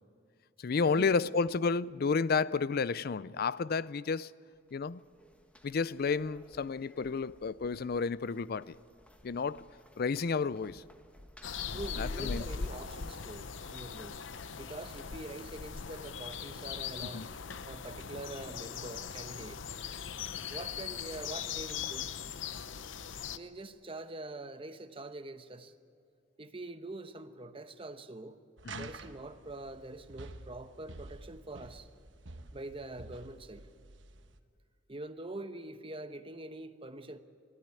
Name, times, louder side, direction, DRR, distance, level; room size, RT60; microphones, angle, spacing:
voice 1, 0.6-4.3 4.7-5.0 5.6-8.8 9.2-9.7 10.0-10.8 12.0-12.4 17.1-17.3 28.6-28.9, left 5 dB, 55° left, 0.4 m, -31 dB
sound 1, 4.6-16.7, equal, 5° left, 1.3 m, -59 dB
sound 2, 11.4-23.4, left 6 dB, 80° left, 0.8 m, -40 dB
voice 2, 11.7-14.2 14.5-17.4 17.7-19.6 20.5-22.1 23.3-25.7 26.4-28.4 28.8-31.9 32.5-33.7 34.9-37.2, right 2 dB, 30° right, 1.0 m, -44 dB
sound 3, 28.6-34.4, right 3 dB, 80° right, 1.2 m, -49 dB
21.0 x 13.5 x 9.7 m
head